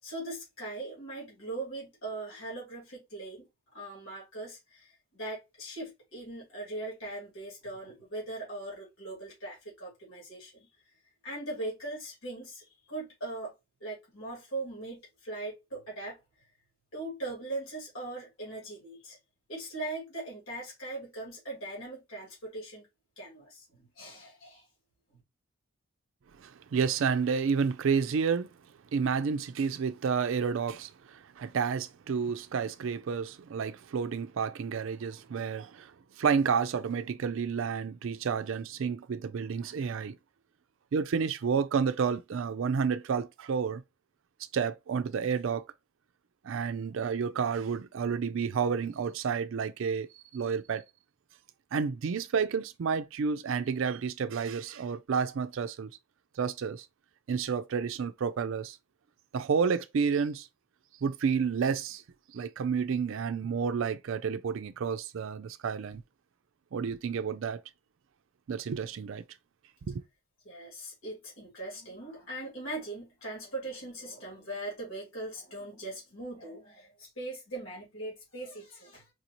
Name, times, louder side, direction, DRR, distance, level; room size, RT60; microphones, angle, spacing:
voice 1, 0.0-10.7 11.2-13.5 13.8-16.2 16.9-19.2 19.5-22.9 23.2-24.7 70.4-79.1, right 2 dB, 70° left, 2.6 m, -40 dB
voice 2, 26.4-28.5 28.9-40.1 40.9-43.8 44.5-45.6 46.4-50.8 51.7-55.9 56.4-56.9 57.3-58.8 59.3-60.5 61.0-62.0 62.3-66.0 66.7-67.6 68.5-69.2 69.9-70.0, right 6 dB, 65° right, 0.4 m, -30 dB
4.9 x 2.6 x 2.9 m
head